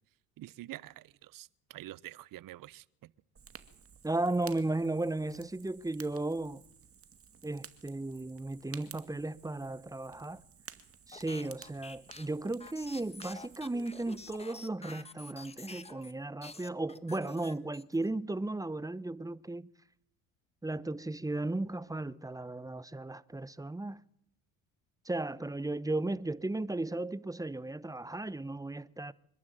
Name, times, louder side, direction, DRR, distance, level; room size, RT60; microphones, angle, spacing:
voice 1, 0.4-3.1, right 15 dB, 55° right, 1.0 m, -47 dB
Fire, 3.3-14.4, right 7 dB, 35° right, 2.2 m, -54 dB
voice 2, 4.0-6.6 7.4-10.4 11.1-19.7 20.6-24.0 25.0-29.1, right 2 dB, 10° right, 0.9 m, -35 dB
sound 1, 11.1-16.1 16.4-18.1, left 3 dB, 15° left, 1.6 m, -49 dB
26.0 x 12.0 x 9.1 m
supercardioid pair, 75°, 39 cm